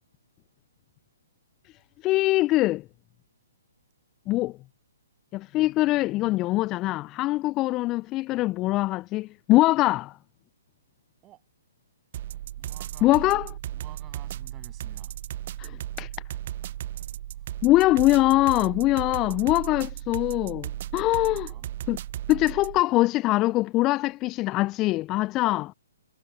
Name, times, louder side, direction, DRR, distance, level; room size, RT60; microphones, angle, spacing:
voice 1, 2.0-2.8 4.3-4.5 5.3-10.2 13.0-13.5 15.6-16.1 17.6-21.5 21.9-22.0 22.3-25.7, left 18 dB, 25° left, 0.3 m, -23 dB
sound 1, 12.1-22.8, right 12 dB, 45° right, 0.4 m, -36 dB
voice 2, 12.6-13.4 13.7-15.1 17.3-17.5 21.0-21.7 22.3-22.9, right 15 dB, 20° right, 7.6 m, -52 dB
figure-of-eight pair, 135°, 0 cm